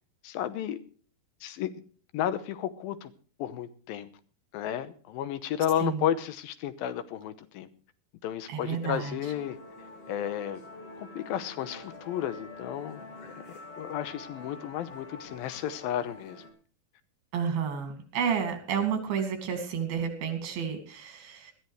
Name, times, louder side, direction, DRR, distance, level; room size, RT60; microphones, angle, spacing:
voice 1, 0.2-0.8 1.4-1.7 2.1-3.1 3.4-4.1 4.5-7.7 8.2-9.6 10.1-10.6 11.0-13.3 13.8-16.4, left 10 dB, 85° left, 12 dB, 2.7 m, -32 dB
voice 2, 8.5-9.2 17.3-21.5, right 7 dB, 85° right, 6 dB, 4.2 m, -31 dB
Musical instrument, 8.7-16.5, left 2 dB, 45° left, 3.1 m, -46 dB
20.5 x 13.0 x 3.2 m, 0.41 s
omnidirectional pair, 4.1 m